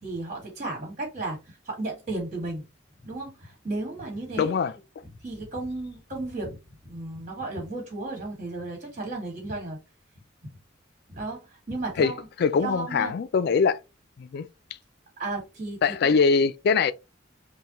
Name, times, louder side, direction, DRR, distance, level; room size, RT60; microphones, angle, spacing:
voice 1, 0.0-2.6 3.0-4.5 5.2-6.6 6.8-9.8 11.1-12.3 12.6-13.2 15.2-16.1, right 2 dB, 40° right, 1.8 m, -34 dB
voice 2, 4.4-4.7 12.0-12.1 12.4-13.8 14.2-14.5 15.8-16.9, left 5 dB, 55° left, 0.3 m, -22 dB
5.5 x 2.2 x 2.9 m
head